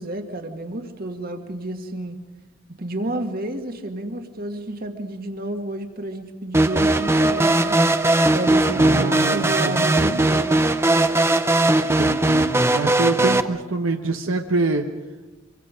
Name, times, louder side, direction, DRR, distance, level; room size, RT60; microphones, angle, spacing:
voice 1, 0.0-2.2 2.8-7.8 8.3-11.0, right 1 dB, 45° right, 5 dB, 1.9 m, -31 dB
sound 1, 6.5-13.4, right 2 dB, 10° right, 0.6 m, -19 dB
voice 2, 8.7-10.3 12.0-14.9, right 2 dB, 70° right, 4 dB, 1.1 m, -26 dB
26.0 x 24.5 x 5.2 m, 1.2 s
head